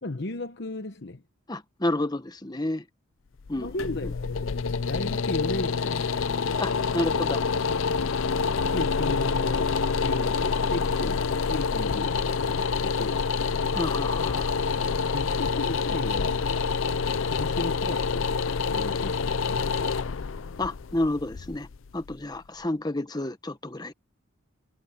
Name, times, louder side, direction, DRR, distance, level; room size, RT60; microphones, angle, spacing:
voice 1, 0.0-1.2 3.6-4.6 4.9-6.1 8.7-13.3 15.1-16.5 17.3-18.3 18.7-19.7, left 2 dB, 55° left, 1.0 m, -35 dB
voice 2, 1.5-2.8 3.5-3.7 6.6-7.4 13.7-14.5 20.6-21.7 21.9-23.9, left 1 dB, 20° left, 1.1 m, -30 dB
sound 1, 3.4-22.4, left 5 dB, 70° left, 0.5 m, -27 dB
head